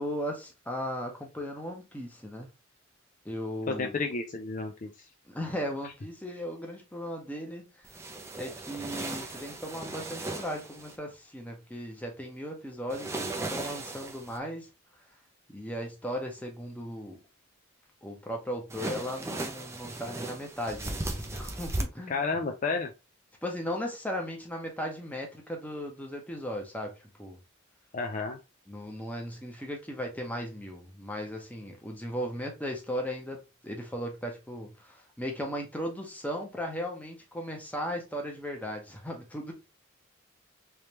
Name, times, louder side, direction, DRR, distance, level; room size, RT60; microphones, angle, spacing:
voice 1, 0.0-2.5 3.2-3.9 5.3-7.8 8.3-14.7 15.5-17.2 18.0-22.2 23.4-27.4 28.7-39.5, equal, 10° left, 0.9 m, -37 dB
voice 2, 3.7-4.9 22.1-22.9 27.9-28.4, left 4 dB, 40° left, 0.4 m, -31 dB
sound 1, 7.8-11.0 12.9-14.4 18.7-21.8, right 2 dB, 15° right, 0.5 m, -37 dB
3.4 x 3.2 x 2.9 m
head